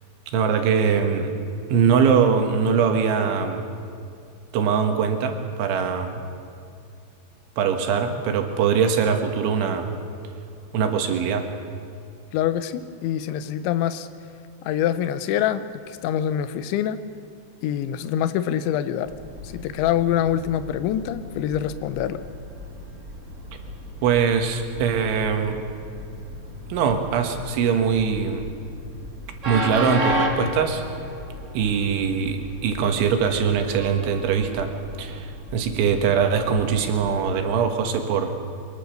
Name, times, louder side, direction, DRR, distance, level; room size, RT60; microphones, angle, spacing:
voice 1, 0.3-1.3 1.7-3.6 4.5-6.2 7.6-9.9 10.7-11.5 24.0-25.6 26.7-28.5 29.5-30.8 31.5-34.7 35.0-38.4, right 6 dB, 80° right, 5 dB, 4.0 m, -22 dB
voice 2, 12.3-14.1 14.6-15.7 16.0-17.0 17.6-19.1 19.4-22.2, left 10 dB, 80° left, 12 dB, 3.2 m, -25 dB
Train, 19.0-37.6, right 1 dB, 35° right, 1.1 m, -35 dB
23.5 x 21.5 x 6.6 m, 2.5 s
omnidirectional pair, 5.3 m